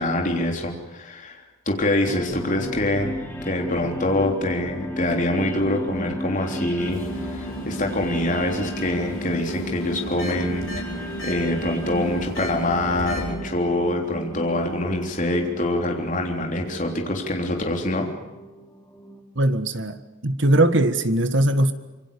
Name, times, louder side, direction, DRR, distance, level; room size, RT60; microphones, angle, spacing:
voice 1, 0.0-3.2 3.4-10.7 11.2-18.1, left 1 dB, 35° left, 3.4 m, -25 dB
sound 1, 2.1-19.2, equal, 10° left, 2.7 m, -35 dB
sound 2, 6.8-13.3, equal, 70° left, 4.8 m, -34 dB
voice 2, 19.3-21.7, right 1 dB, 60° right, 1.6 m, -20 dB
26.5 x 24.0 x 7.0 m
head